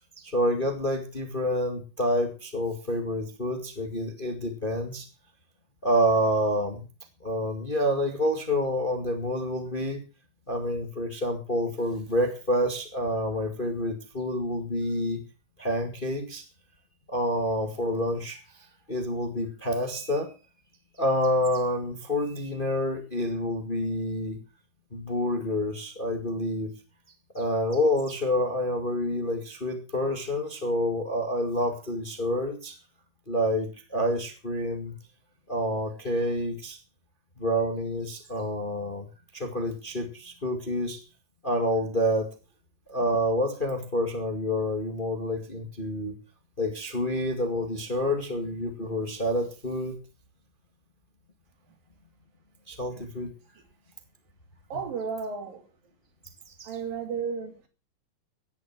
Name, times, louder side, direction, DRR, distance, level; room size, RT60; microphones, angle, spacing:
voice 1, 0.2-5.1 5.8-6.8 7.2-10.0 10.5-15.2 15.6-16.4 17.1-20.3 21.0-24.4 24.9-26.7 27.3-32.7 33.3-34.9 35.5-36.8 37.4-39.1 39.3-41.0 41.4-42.3 42.9-46.1 46.6-50.0 52.7-53.3 56.5-56.7, equal, 20° left, 1.7 m, -28 dB
voice 2, 54.7-55.7 56.6-57.7, right 5 dB, 70° right, 4.4 m, -33 dB
16.0 x 11.0 x 6.0 m
omnidirectional pair, 4.2 m